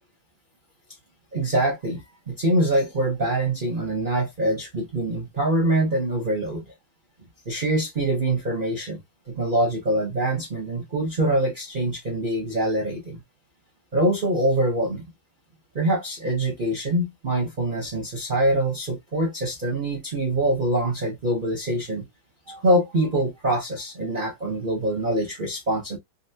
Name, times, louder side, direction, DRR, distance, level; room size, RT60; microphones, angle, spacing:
voice 1, 1.3-2.0 2.3-6.6 7.5-9.0 9.3-13.2 13.9-15.0 15.7-22.0 22.5-26.0, right 1 dB, 50° right, 0.6 m, -24 dB
4.0 x 2.0 x 2.7 m
omnidirectional pair, 2.3 m